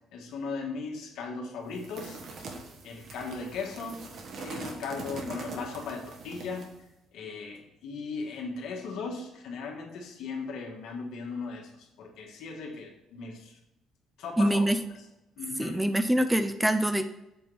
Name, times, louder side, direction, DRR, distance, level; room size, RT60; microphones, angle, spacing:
voice 1, 0.1-2.2 2.8-4.0 4.4-6.7 7.1-13.6 14.2-14.7 15.4-15.8, left 4 dB, 75° left, 0 dB, 1.8 m, -37 dB
sound 1, 1.7-6.8, right 3 dB, 50° right, 1.4 m, -42 dB
voice 2, 14.4-14.8 15.6-17.1, right 1 dB, 5° right, 9 dB, 0.4 m, -24 dB
7.8 x 3.7 x 6.3 m, 0.93 s
cardioid pair, 155°, 0 cm